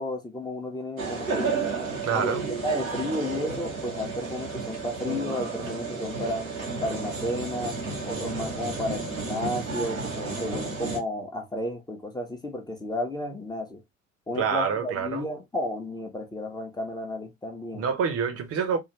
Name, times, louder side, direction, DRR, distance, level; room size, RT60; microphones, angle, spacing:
voice 1, 0.0-1.6 2.1-2.4 2.6-6.5 6.8-7.8 8.0-13.8 14.3-17.9, left 1 dB, 10° left, 0.8 m, -32 dB
sound 1, 1.0-11.0, right 4 dB, 85° right, 1.0 m, -32 dB
voice 2, 2.0-2.4 14.3-15.2 17.7-18.8, right 6 dB, 35° right, 0.9 m, -26 dB
3.6 x 2.5 x 2.9 m
figure-of-eight pair, 60°, 40 cm